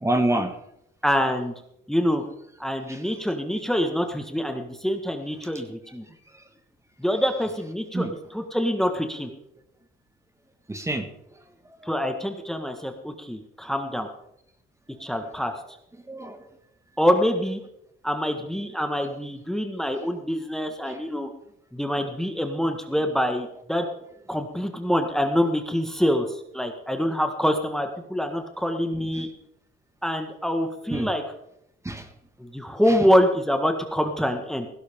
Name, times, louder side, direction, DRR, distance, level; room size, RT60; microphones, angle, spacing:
voice 1, 0.0-0.5 2.9-3.0 7.9-8.1 10.7-11.1 16.1-16.4 20.8-21.0 28.9-29.3 30.9-31.1 31.9-32.1 32.9-33.0, right 1 dB, 15° right, 7 dB, 1.7 m, -27 dB
voice 2, 1.0-1.5 1.9-2.2 2.6-6.0 7.0-9.3 11.8-14.1 15.0-15.5 17.0-17.6 18.0-21.3 21.7-23.9 24.3-29.3 30.0-31.2 32.4-34.7, equal, ahead, 5 dB, 1.6 m, -25 dB
17.0 x 16.0 x 3.7 m, 0.77 s
cardioid pair, 90°, 20 cm